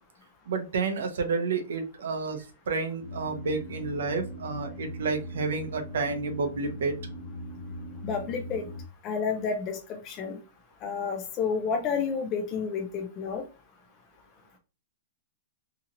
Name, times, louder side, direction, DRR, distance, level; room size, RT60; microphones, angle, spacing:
voice 1, 0.5-6.9, right 4 dB, 75° right, 5 dB, 0.6 m, -30 dB
sound 1, 3.0-8.8, left 1 dB, 50° left, 0.7 m, -40 dB
voice 2, 8.0-8.6 9.0-9.8 10.0-10.4 10.8-13.4, left 6 dB, 20° left, 3 dB, 0.3 m, -30 dB
2.8 x 2.8 x 2.4 m, 0.33 s
hypercardioid pair, 175°, 0 cm